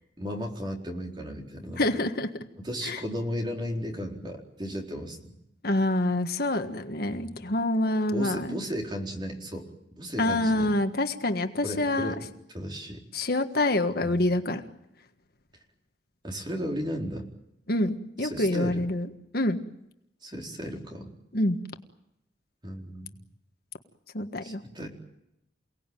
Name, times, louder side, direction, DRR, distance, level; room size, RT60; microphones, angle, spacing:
voice 1, 0.2-1.8 2.6-5.3 7.1-7.3 8.1-10.7 11.6-12.2 12.5-13.0 14.0-14.2 16.2-17.3 18.2-18.8 20.2-21.1 22.6-23.2 24.4-24.9, equal, 25° right, 1 dB, 4.3 m, -35 dB
voice 2, 1.8-2.3 2.8-3.0 5.6-8.6 10.2-12.1 13.1-14.6 17.7-19.1 19.3-19.6 21.3-21.6 24.1-24.6, left 1 dB, 55° left, 7 dB, 1.6 m, -26 dB
29.0 x 18.5 x 9.2 m, 0.82 s
head